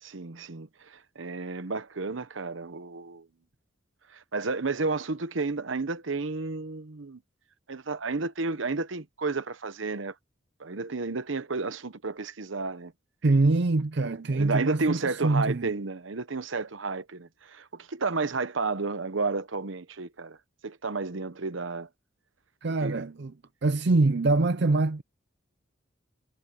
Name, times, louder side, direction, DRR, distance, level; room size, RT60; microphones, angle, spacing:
voice 1, 0.0-3.3 4.1-7.2 7.7-10.1 10.6-12.9 14.3-20.4 20.6-21.9 22.8-23.0, right 3 dB, 80° right, 1.0 m, -32 dB
voice 2, 13.2-15.7 22.6-23.3 23.6-25.0, right 2 dB, 60° right, 0.6 m, -24 dB
head